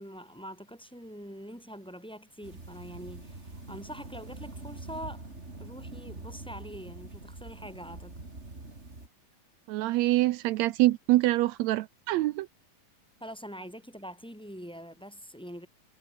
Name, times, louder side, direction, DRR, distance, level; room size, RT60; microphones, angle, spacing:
voice 1, 0.0-5.3 5.6-8.2 13.2-15.7, equal, ahead, 6.6 m, -44 dB
sound 1, 2.4-9.1, right 2 dB, 20° right, 4.0 m, -44 dB
voice 2, 9.7-12.5, right 17 dB, 85° right, 1.5 m, -25 dB
omnidirectional pair, 3.9 m